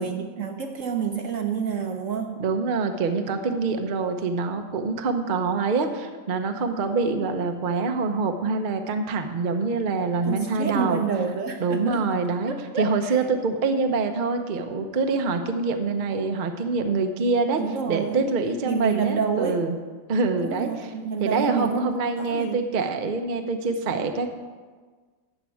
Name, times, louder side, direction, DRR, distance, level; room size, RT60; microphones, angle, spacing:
voice 1, 0.0-2.4 10.3-12.1 12.5-13.3 17.6-18.3 18.6-19.6 20.4-22.6, right 6 dB, 60° right, 5 dB, 0.9 m, -29 dB
voice 2, 2.4-11.0 11.6-17.6 17.9-19.8 20.1-20.9 21.2-24.3, right 4 dB, 40° right, 6 dB, 0.7 m, -25 dB
13.0 x 4.6 x 8.5 m, 1.4 s
omnidirectional pair, 1.8 m